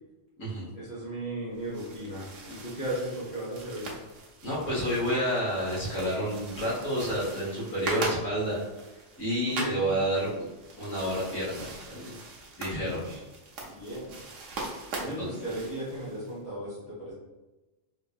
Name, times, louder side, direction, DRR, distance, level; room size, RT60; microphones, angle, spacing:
voice 1, 0.7-3.9 9.5-9.9 12.8-13.2 13.7-14.2 15.0-17.1, right 1 dB, 45° left, -9 dB, 0.8 m, -36 dB
sound 1, 1.5-16.4, right 2 dB, 80° right, 1.0 m, -41 dB
voice 2, 4.4-8.6 9.2-10.5 10.8-12.1 12.6-13.0 15.2-15.3, equal, 75° left, -9 dB, 1.5 m, -29 dB
3.8 x 2.6 x 2.4 m, 1.1 s
omnidirectional pair, 1.3 m